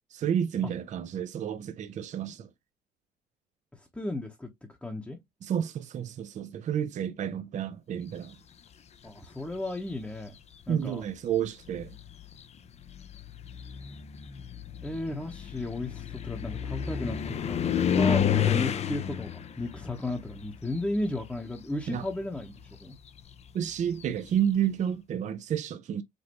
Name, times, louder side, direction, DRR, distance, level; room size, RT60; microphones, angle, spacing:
voice 1, 0.1-2.5 5.4-8.4 10.7-12.0 21.9-22.0 23.5-26.0, right 9 dB, 45° right, 0.6 m, -30 dB
voice 2, 3.9-4.5 4.8-5.2 9.0-10.3 10.7-11.0 14.8-23.0, left 2 dB, 5° left, 1.0 m, -34 dB
sound 1, 9.4-9.9 10.9-11.0 11.6-21.5 21.8-24.4, left 8 dB, 40° left, 0.6 m, -31 dB
5.3 x 2.7 x 2.9 m
cardioid pair, 110°, 17 cm